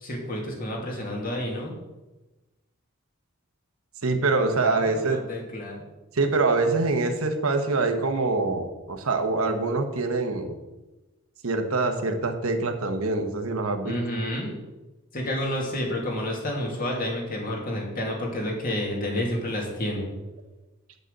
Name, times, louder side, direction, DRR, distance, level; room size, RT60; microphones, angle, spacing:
voice 1, 0.0-1.7 4.6-5.8 13.8-14.5 15.1-20.1, left 1 dB, 40° left, -1 dB, 2.5 m, -30 dB
voice 2, 4.0-5.2 6.1-10.6 11.4-14.0, right 3 dB, 85° right, 6 dB, 1.1 m, -25 dB
8.2 x 6.5 x 6.6 m, 1.1 s
head